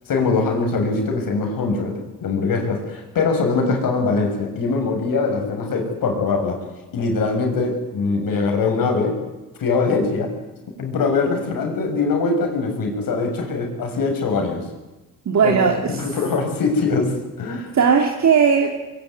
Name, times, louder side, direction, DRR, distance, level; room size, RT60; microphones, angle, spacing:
voice 1, 0.1-6.6 6.9-9.2 9.6-10.3 10.8-14.6 15.4-15.6 15.9-17.7, left 4 dB, 70° left, 3 dB, 6.6 m, -22 dB
voice 2, 15.3-16.0 17.7-18.7, right 6 dB, 50° right, 4 dB, 2.8 m, -17 dB
23.5 x 22.0 x 9.6 m, 1.1 s
cardioid pair, 80°, 35 cm